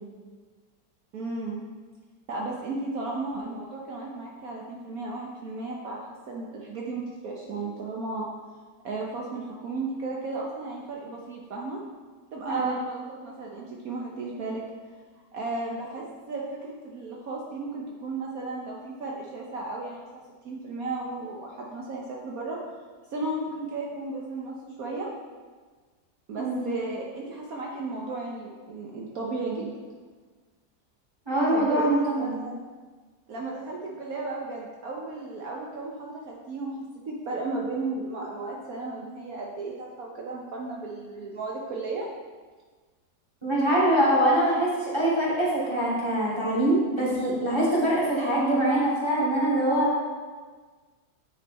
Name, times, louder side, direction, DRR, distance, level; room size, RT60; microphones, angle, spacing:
voice 1, 1.1-1.7 2.3-6.0 6.3-8.3 8.8-11.8 12.3-14.6 15.3-22.6 23.1-25.1 26.3-29.7 31.5-32.5 33.3-36.8 37.1-42.1, right 3 dB, 65° right, -2 dB, 1.3 m, -34 dB
voice 2, 31.3-32.5 43.4-49.9, right 1 dB, 15° right, -7 dB, 2.7 m, -24 dB
9.8 x 5.7 x 4.2 m, 1.4 s
omnidirectional pair, 1.7 m